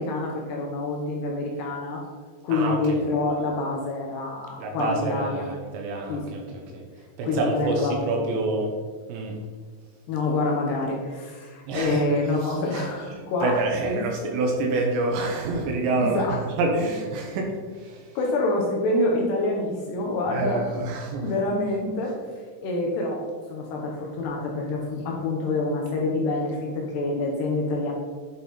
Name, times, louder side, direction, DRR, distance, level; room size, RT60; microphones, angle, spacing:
voice 1, 0.0-2.0 2.4-5.5 6.1-6.3 6.7-6.8 7.2-8.3 10.1-14.3 16.0-16.4 18.2-20.6 21.2-22.1 22.6-23.2 23.5-27.9, left 2 dB, 70° left, -1 dB, 2.7 m, -27 dB
voice 2, 4.6-6.4 6.7-6.8 7.2-8.7 9.1-9.4 11.7-12.0 12.7-12.9 13.1-18.1 20.3-21.3, right 2 dB, 75° right, 1 dB, 2.9 m, -27 dB
10.5 x 5.4 x 4.3 m, 1.5 s
omnidirectional pair, 5.7 m